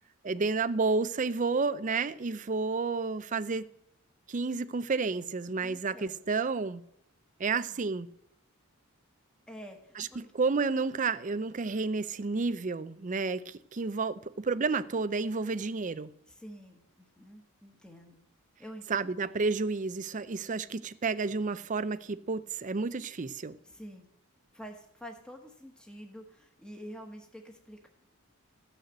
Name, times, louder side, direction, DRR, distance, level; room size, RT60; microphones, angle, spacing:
voice 1, 0.2-3.7 4.3-6.8 7.4-8.1 10.0-16.1 18.9-23.6, right 4 dB, 35° right, 0.5 m, -31 dB
voice 2, 5.6-6.2 7.7-7.8 9.5-10.3 16.3-18.2 18.6-19.1 23.6-24.1 24.5-27.9, equal, 5° left, 1.3 m, -48 dB
15.5 x 6.6 x 7.9 m
head